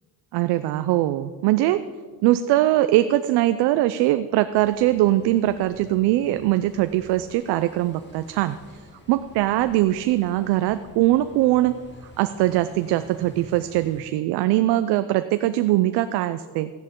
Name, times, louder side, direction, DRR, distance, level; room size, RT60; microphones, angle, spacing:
voice 1, 0.3-1.8 2.2-8.6 9.1-11.7 12.2-16.7, right 15 dB, 85° right, 11 dB, 0.5 m, -21 dB
sound 1, 4.5-14.0, left 2 dB, 30° left, 2.3 m, -48 dB
14.0 x 10.5 x 3.7 m, 1.5 s
cardioid pair, 80°, 38 cm